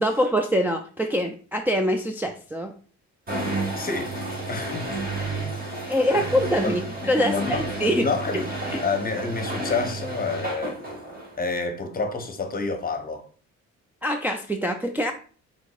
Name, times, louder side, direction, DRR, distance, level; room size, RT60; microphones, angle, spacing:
voice 1, 0.0-2.7 5.8-8.1 8.3-8.4 8.7-8.8 14.0-15.1, equal, 5° right, 0.4 m, -24 dB
sound 1, 3.3-11.5, right 2 dB, 30° right, 1.7 m, -31 dB
voice 2, 3.8-4.2 4.5-4.8 6.1-6.3 6.6-6.7 7.0-10.8 11.4-13.3, left 4 dB, 30° left, 0.9 m, -29 dB
5.1 x 3.6 x 2.4 m
cardioid pair, 90°, 30 cm